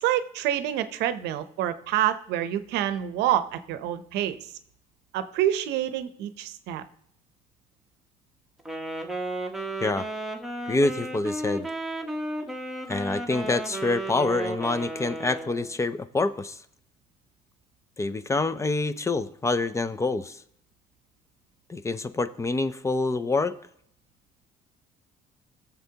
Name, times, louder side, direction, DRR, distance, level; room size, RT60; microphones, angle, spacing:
voice 1, 0.0-4.5 5.1-6.8, right 12 dB, 85° right, 12 dB, 0.7 m, -27 dB
Wind instrument woodwind instrument, 8.6-15.8, right 1 dB, ahead, 1.1 m, -34 dB
voice 2, 10.7-11.7 12.9-16.6 18.0-20.4 21.7-23.6, left 3 dB, 15° left, 13 dB, 0.4 m, -26 dB
17.0 x 7.1 x 2.8 m, 0.66 s
cardioid pair, 110°, 17 cm